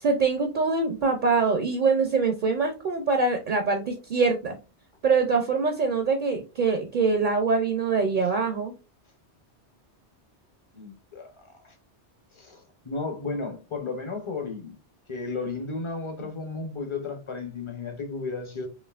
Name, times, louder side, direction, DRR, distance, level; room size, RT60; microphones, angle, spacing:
voice 1, 0.0-4.6 5.0-8.7, right 4 dB, 50° right, 0.7 m, -24 dB
voice 2, 10.7-11.7 12.3-14.7 15.1-18.7, left 3 dB, 30° left, 0.8 m, -34 dB
5.5 x 2.6 x 2.4 m
omnidirectional pair, 1.2 m